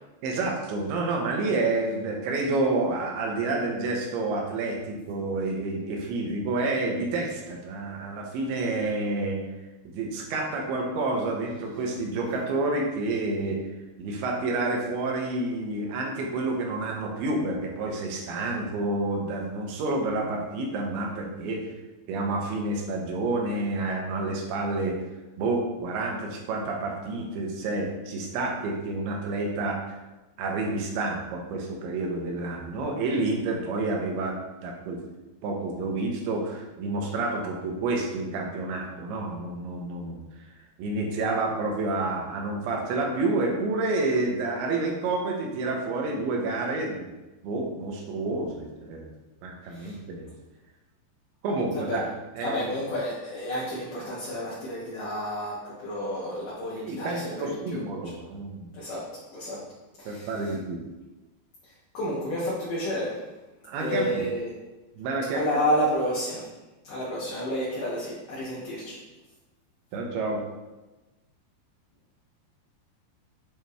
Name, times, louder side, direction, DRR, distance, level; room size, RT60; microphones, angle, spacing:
voice 1, 0.2-9.4 9.9-13.6 14.0-21.6 22.1-25.0 25.4-30.0 30.4-35.0 35.4-40.2 40.8-47.0 47.4-49.1 49.4-50.3 51.4-52.0 52.4-52.7 56.9-58.7 59.5-59.6 60.1-60.8 63.6-64.2 65.0-65.4 69.9-70.4, right 2 dB, 75° right, 1 dB, 2.5 m, -29 dB
voice 2, 52.4-57.8 58.7-59.0 59.3-59.6 60.0-60.5 61.6-63.2 63.7-64.5 65.3-66.5 66.8-69.0, equal, 65° left, -7 dB, 2.3 m, -30 dB
9.0 x 3.0 x 3.4 m, 1.1 s
omnidirectional pair, 5.2 m